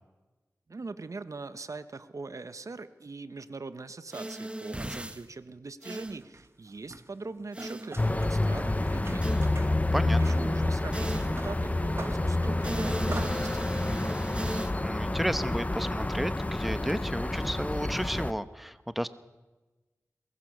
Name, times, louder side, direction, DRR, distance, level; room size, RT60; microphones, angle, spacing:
voice 1, 0.7-9.5 10.2-14.0, right 3 dB, 60° right, 13 dB, 1.0 m, -41 dB
sound 1, 4.1-5.2 5.8-6.2 7.5-7.9 9.2-9.5 10.9-11.5 12.6-14.7, right 1 dB, 20° right, 1.6 m, -37 dB
sound 2, 6.0-9.7 10.1-13.3, right 2 dB, 45° right, 1.6 m, -45 dB
sound 3, 8.0-18.3, left 2 dB, 25° left, 0.9 m, -28 dB
voice 2, 9.9-10.4 14.7-19.1, equal, ahead, 12 dB, 1.0 m, -33 dB
23.0 x 20.0 x 6.6 m, 1.2 s
cardioid pair, 50°, 6 cm